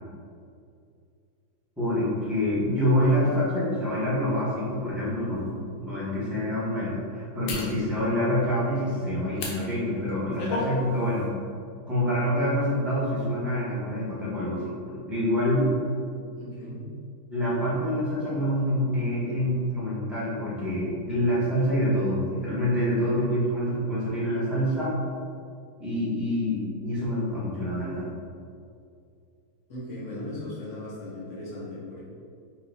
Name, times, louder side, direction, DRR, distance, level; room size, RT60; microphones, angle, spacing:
voice 1, 1.8-11.3 11.9-14.6 15.1-15.7 17.3-24.9 25.8-28.0, equal, ahead, -9 dB, 0.9 m, -26 dB
voice 2, 2.9-3.4 16.3-16.9 29.7-32.0, left 1 dB, 40° left, -7 dB, 1.3 m, -38 dB
sound 1, 4.6-4.7 5.4-5.5 7.5-7.7 9.3-9.6 10.1-10.7 11.1-11.3, left 2 dB, 70° left, 1.4 m, -32 dB
4.1 x 3.2 x 4.0 m, 2.4 s
omnidirectional pair, 2.3 m